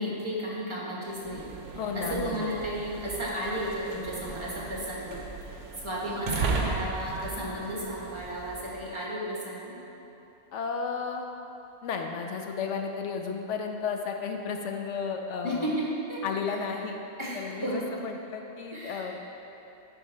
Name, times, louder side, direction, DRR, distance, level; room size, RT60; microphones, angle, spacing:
voice 1, 0.0-1.5 1.9-5.2 5.8-9.8 15.4-16.6 17.2-17.9 18.7-19.1, equal, 20° right, -5 dB, 1.3 m, -33 dB
sound 1, 1.1-8.9, right 4 dB, 60° right, 1.0 m, -37 dB
voice 2, 1.8-2.5 10.5-11.3 11.8-15.7 16.2-17.0 17.3-19.2, left 5 dB, 65° left, 3 dB, 0.8 m, -33 dB
9.8 x 4.6 x 4.3 m, 3.0 s
omnidirectional pair, 1.5 m